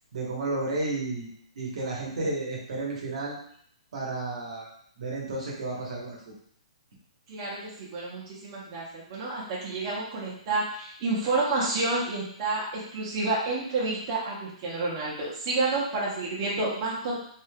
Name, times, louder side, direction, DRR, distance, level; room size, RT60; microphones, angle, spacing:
voice 1, 0.1-1.3 1.6-3.4 3.9-4.7 5.0-6.2, right 2 dB, 70° right, -3 dB, 1.1 m, -32 dB
voice 2, 7.3-17.2, right 3 dB, 40° right, -5 dB, 0.9 m, -29 dB
3.3 x 2.7 x 2.2 m, 0.63 s
hypercardioid pair, 150°, 3 cm